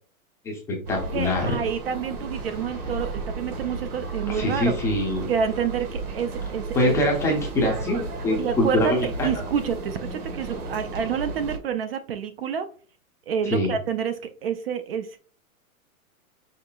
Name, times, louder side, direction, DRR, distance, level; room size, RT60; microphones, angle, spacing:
voice 1, 0.4-1.6 4.3-5.3 6.7-9.3 13.5-13.8, left 1 dB, 5° left, -1 dB, 0.5 m, -24 dB
sound 1, 0.9-11.6, right 3 dB, 90° right, 1.5 m, -33 dB
voice 2, 1.1-4.8 5.3-6.9 8.4-12.7 13.3-15.2, right 7 dB, 45° right, 9 dB, 0.4 m, -28 dB
5.7 x 3.9 x 2.2 m, 0.41 s
hypercardioid pair, 150°, 43 cm